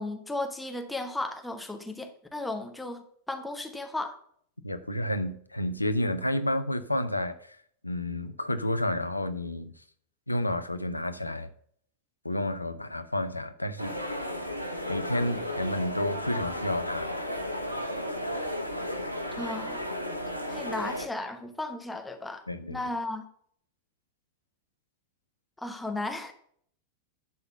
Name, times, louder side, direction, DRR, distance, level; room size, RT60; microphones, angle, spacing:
voice 1, 0.0-4.2 19.3-19.8 20.5-22.4 22.7-23.2 25.6-26.3, left 2 dB, 5° left, 1.0 m, -35 dB
voice 2, 4.6-7.6 7.8-9.7 10.3-11.5 12.2-14.0 14.9-17.1 22.5-22.8, left 1 dB, 85° left, 0.6 m, -30 dB
sound 1, 13.8-21.1, equal, 85° right, 1.0 m, -34 dB
10.5 x 4.0 x 6.7 m
figure-of-eight pair, 90°, 0 cm